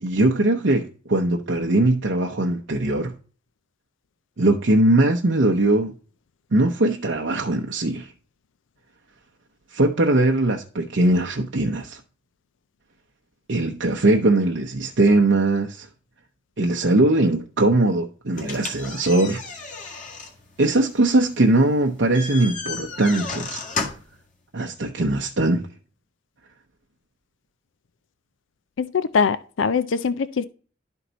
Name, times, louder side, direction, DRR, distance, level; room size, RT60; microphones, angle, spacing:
voice 1, 0.0-3.2 4.4-5.9 6.5-8.1 9.7-12.0 13.5-15.9 16.6-19.4 20.6-23.6 24.5-25.7, right 2 dB, 65° right, 0.8 m, -20 dB
sound 1, 18.3-24.2, left 4 dB, 40° left, 1.8 m, -34 dB
voice 2, 28.8-30.5, left 5 dB, 75° left, 0.5 m, -22 dB
11.5 x 4.5 x 4.0 m
head